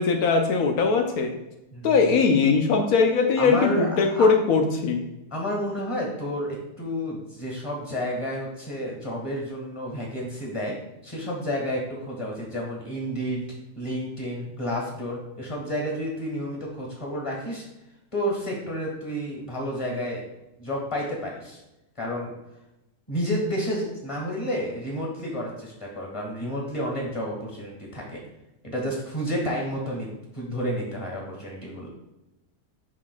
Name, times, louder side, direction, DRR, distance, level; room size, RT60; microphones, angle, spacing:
voice 1, 0.0-1.3 1.8-5.0, left 4 dB, 85° left, 4 dB, 1.2 m, -20 dB
voice 2, 1.7-2.1 3.4-4.3 5.3-10.8 11.0-13.5 13.8-17.6 18.1-20.2 20.6-21.6 22.0-22.3 23.1-28.2 28.6-30.1 30.3-31.9, equal, 20° left, -1 dB, 1.8 m, -30 dB
11.0 x 3.8 x 2.3 m, 0.93 s
omnidirectional pair, 1.5 m